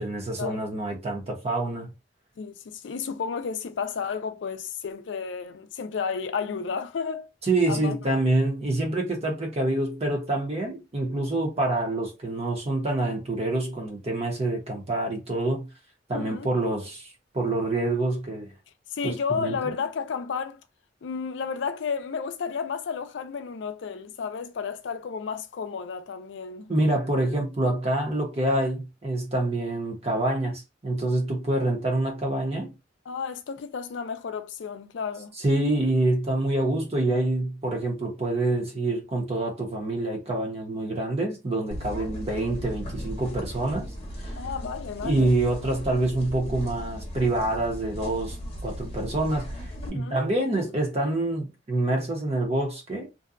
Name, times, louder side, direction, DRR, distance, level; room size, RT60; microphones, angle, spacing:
voice 1, 0.0-1.9 7.4-15.7 16.1-17.1 17.3-18.5 19.0-19.7 26.7-32.7 35.4-43.9 44.2-44.3 45.0-48.4 48.6-49.6 49.9-53.1, right 2 dB, 35° right, 0.8 m, -26 dB
voice 2, 2.4-7.3 7.7-8.0 16.1-16.5 18.9-20.6 21.0-26.7 33.1-35.3 44.4-45.3 49.8-50.2, left 6 dB, 70° left, 0.4 m, -32 dB
sound 1, 41.7-49.9, equal, 35° left, 0.8 m, -37 dB
2.6 x 2.2 x 2.4 m
head